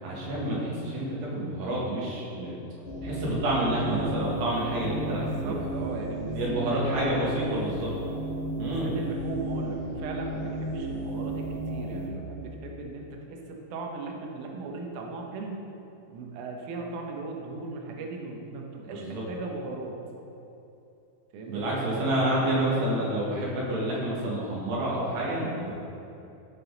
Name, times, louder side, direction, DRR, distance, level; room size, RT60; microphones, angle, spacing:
voice 1, 0.0-2.6 3.0-5.7 6.4-7.9 8.6-8.9 18.9-19.3 21.5-25.7, right 1 dB, 65° right, -5 dB, 3.4 m, -29 dB
sound 1, 2.8-12.1, right 1 dB, 50° left, 2.7 m, -34 dB
voice 2, 5.2-7.8 8.6-15.6 16.1-20.0 21.3-21.9, right 3 dB, 80° right, 0 dB, 1.8 m, -38 dB
12.5 x 6.1 x 3.9 m, 2.8 s
omnidirectional pair, 4.9 m